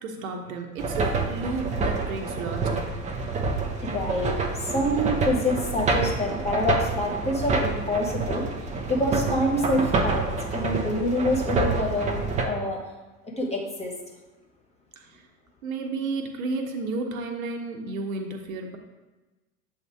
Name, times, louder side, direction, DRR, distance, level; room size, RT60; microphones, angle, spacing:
voice 1, 0.0-2.9 15.0-15.2 15.6-18.8, right 3 dB, 65° right, 3 dB, 1.0 m, -32 dB
sound 1, 0.8-12.4, right 3 dB, 15° right, 0.5 m, -27 dB
voice 2, 3.8-8.4 8.9-12.8 13.4-13.9, left 1 dB, 15° left, 0 dB, 1.2 m, -26 dB
7.4 x 2.8 x 4.6 m, 1.2 s
figure-of-eight pair, 85°, 44 cm